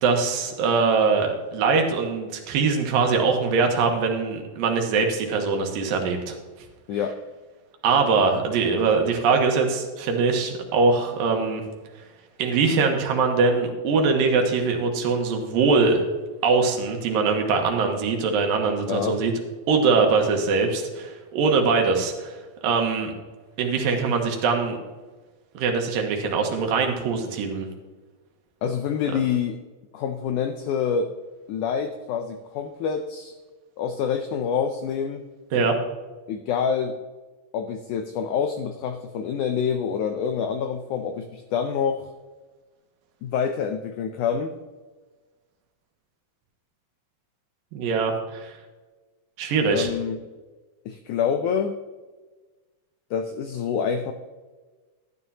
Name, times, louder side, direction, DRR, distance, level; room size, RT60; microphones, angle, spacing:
voice 1, 0.0-6.4 7.8-11.6 12.4-16.0 16.4-19.3 19.7-22.4 22.6-23.1 23.6-24.8 25.5-27.7 35.5-35.8 47.7-48.5 49.4-49.9, right 4 dB, 75° right, 3 dB, 2.8 m, -22 dB
voice 2, 6.9-7.2 18.9-19.2 28.6-29.6 29.9-31.1 31.5-33.3 33.8-35.2 36.3-37.0 37.5-42.1 43.2-44.5 49.6-50.2 50.8-51.8 53.1-54.1, left 7 dB, 85° left, 7 dB, 1.7 m, -26 dB
12.5 x 9.8 x 2.8 m, 1.3 s
omnidirectional pair, 4.2 m